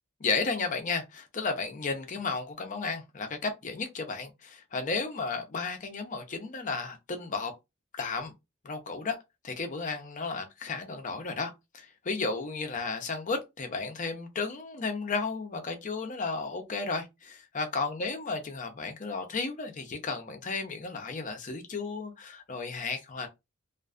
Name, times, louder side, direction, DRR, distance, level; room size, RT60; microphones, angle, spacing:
voice 1, 0.2-7.5 8.0-8.3 8.6-9.2 9.4-23.3, left 4 dB, 40° left, 0.5 m, -33 dB
2.4 x 2.3 x 2.4 m
head